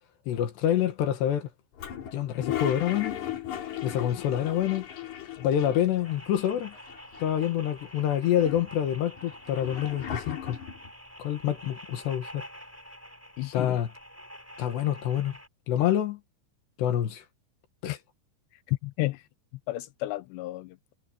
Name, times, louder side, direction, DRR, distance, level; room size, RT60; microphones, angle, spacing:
voice 1, 0.3-1.5 2.1-3.2 3.8-4.9 5.4-6.7 7.2-10.6 11.2-12.4 13.5-13.9 14.6-15.4 15.7-16.2 16.8-17.2 17.8-18.0, left 11 dB, 65° left, 3.4 m, -27 dB
Toilet flush, 1.8-6.1 6.4-6.5 6.7-7.6 8.1-10.9, left 10 dB, 45° left, 3.2 m, -37 dB
sound 1, 6.0-15.5, equal, 5° right, 3.6 m, -47 dB
voice 2, 13.4-13.8 17.8-18.0 18.7-19.2 19.7-20.9, left 19 dB, 85° left, 2.5 m, -32 dB
omnidirectional pair, 5.7 m